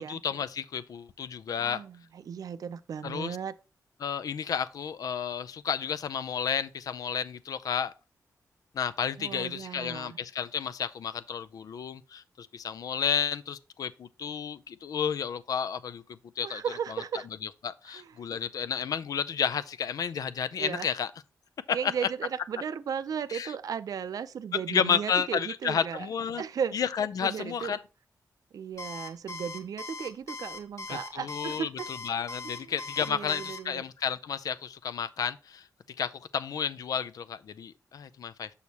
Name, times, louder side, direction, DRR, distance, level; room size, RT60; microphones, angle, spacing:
voice 1, 0.0-1.8 3.0-3.4 4.0-7.9 8.7-16.6 16.9-17.0 17.4-21.1 21.7-21.9 23.3-23.5 24.7-26.4 26.7-27.8 30.9-31.7 32.0-35.7 36.0-38.5, left 7 dB, 75° left, 0.4 m, -31 dB
voice 2, 1.6-3.5 9.2-10.2 16.4-17.3 17.9-18.1 20.6-20.9 21.7-26.1 26.4-26.8 27.2-27.8 28.5-31.9 32.4-32.7 33.1-33.8, right 7 dB, 70° right, 0.5 m, -35 dB
Alarm, 28.8-33.6, left 3 dB, 50° left, 1.5 m, -40 dB
7.0 x 6.3 x 2.8 m
cardioid pair, 90°, 6 cm